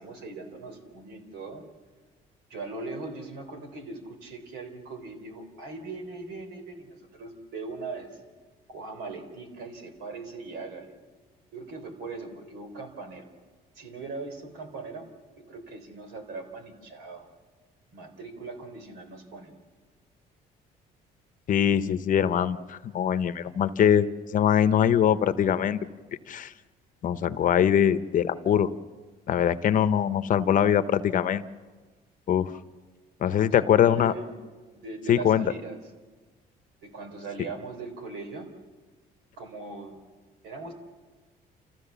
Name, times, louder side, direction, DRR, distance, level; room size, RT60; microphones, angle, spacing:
voice 1, 0.0-1.6 2.5-8.2 8.7-10.9 11.5-13.3 13.8-15.1 15.4-17.3 17.9-19.5 33.3-34.4 34.7-35.8 36.8-38.5 39.4-40.0 40.4-40.7, right 3 dB, 80° right, 6 dB, 3.9 m, -40 dB
voice 2, 21.5-24.1 24.3-25.8 26.3-26.5 27.0-28.7 29.3-31.4 32.3-32.5 33.2-34.1 35.1-35.4, left 9 dB, 50° left, 12 dB, 0.9 m, -22 dB
28.5 x 15.0 x 7.0 m, 1.3 s
cardioid pair, 110°, 17 cm